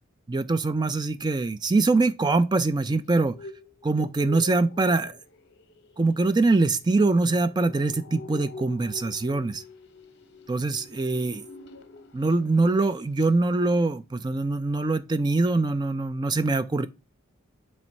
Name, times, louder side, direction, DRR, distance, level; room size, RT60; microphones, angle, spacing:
voice 1, 0.3-3.4 3.8-5.2 6.0-9.6 10.5-11.5 12.1-16.9, right 3 dB, 20° right, 0.3 m, -23 dB
sound 1, 3.2-12.3 12.6-12.9 13.2-13.3, left 3 dB, 50° left, 0.7 m, -45 dB
7.4 x 3.3 x 5.3 m
head